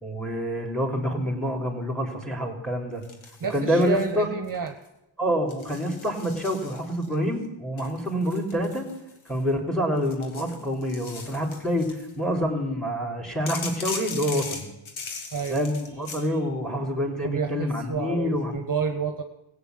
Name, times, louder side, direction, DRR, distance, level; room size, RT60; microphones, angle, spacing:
voice 1, 0.0-3.0 3.5-4.3 5.2-8.9 9.3-14.7 15.5-18.5, equal, ahead, 3 dB, 3.3 m, -27 dB
sound 1, 3.0-4.1 4.4-4.9 5.5-7.1 7.8-9.5 10.0-12.1 13.5-16.3, left 4 dB, 80° left, 1.9 m, -39 dB
voice 2, 3.4-4.8 15.3-15.6 17.2-19.2, right 5 dB, 45° right, 7 dB, 1.2 m, -29 dB
16.0 x 8.3 x 7.8 m, 0.90 s
cardioid pair, 70°, 47 cm